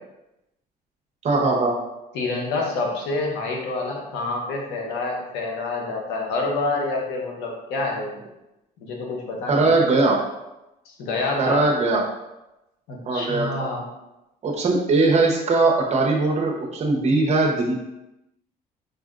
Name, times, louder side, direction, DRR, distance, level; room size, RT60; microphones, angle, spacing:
voice 1, 1.2-1.8 9.5-10.3 11.4-12.1 13.1-13.5 14.4-17.7, right 3 dB, 40° right, 0 dB, 0.8 m, -20 dB
voice 2, 2.1-8.2 8.8-9.8 10.9-11.6 12.9-13.9, left 3 dB, 85° left, 0 dB, 0.9 m, -27 dB
5.0 x 2.6 x 2.4 m, 0.94 s
cardioid pair, 110°, 17 cm